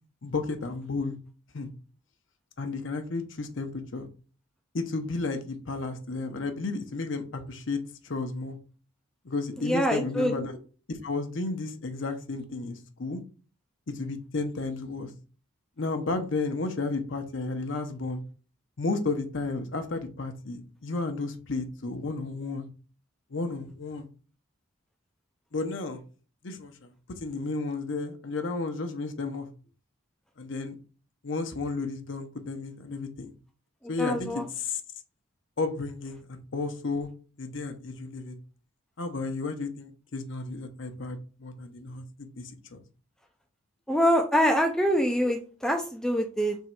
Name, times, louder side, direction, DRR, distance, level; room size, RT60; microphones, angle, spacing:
voice 1, 0.2-1.2 1.5-1.7 2.6-4.1 4.7-8.6 9.2-10.6 10.9-13.2 13.9-15.1 15.8-18.2 18.8-22.7 23.3-24.1 25.5-26.0 26.4-29.5 30.4-30.7 31.2-33.3 33.9-34.8 35.6-37.1 37.4-38.4 39.0-42.8, left 3 dB, 60° left, 7 dB, 0.7 m, -33 dB
voice 2, 9.6-10.3 34.0-34.4 43.9-46.6, equal, 5° left, 3 dB, 0.3 m, -25 dB
3.6 x 3.1 x 4.4 m, 0.38 s
head